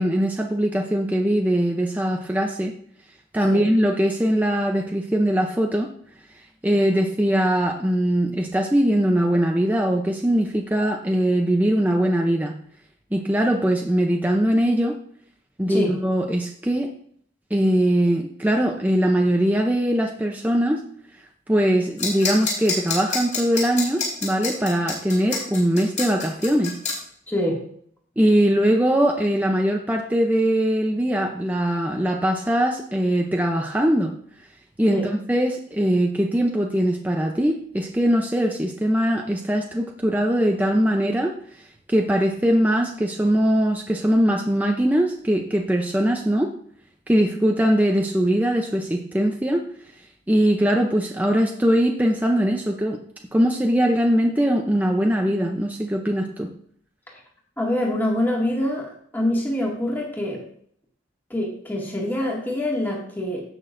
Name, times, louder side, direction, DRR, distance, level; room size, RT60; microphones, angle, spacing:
voice 1, 0.0-2.7 3.3-5.9 6.6-12.5 13.1-15.0 15.6-16.9 17.5-20.8 21.5-26.8 28.2-34.1 34.8-41.3 41.9-46.5 47.1-49.7 50.3-53.0 53.3-56.5, equal, 10° right, 1 dB, 0.6 m, -21 dB
sound 1, 22.0-26.9, left 4 dB, 35° left, 4.0 m, -27 dB
voice 2, 27.3-27.7 34.9-35.1 57.1-57.2 57.6-60.4 61.3-63.4, left 1 dB, 10° left, -3 dB, 2.0 m, -25 dB
16.5 x 6.1 x 2.6 m, 0.63 s
head